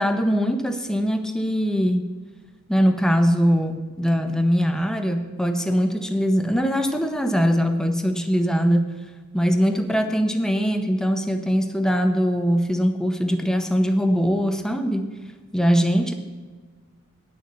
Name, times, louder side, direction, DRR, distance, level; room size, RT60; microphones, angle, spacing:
voice 1, 0.0-2.2 2.7-9.0 9.3-15.1 15.5-16.1, equal, 5° left, 6 dB, 0.8 m, -21 dB
9.7 x 6.7 x 7.9 m, 1.4 s
head